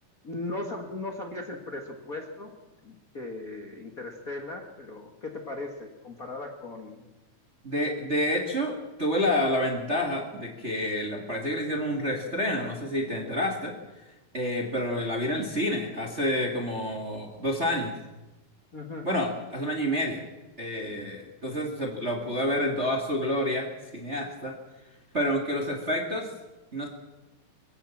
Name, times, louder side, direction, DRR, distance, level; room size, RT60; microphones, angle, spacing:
voice 1, 0.2-2.5 2.8-7.1 18.7-19.1, left 2 dB, 40° left, 3 dB, 1.2 m, -38 dB
voice 2, 7.6-13.7 14.3-17.9 19.0-20.2 20.6-24.5 25.1-26.3 26.7-26.9, equal, 25° right, 1 dB, 1.5 m, -28 dB
23.5 x 16.0 x 7.3 m, 1.1 s
omnidirectional pair, 4.4 m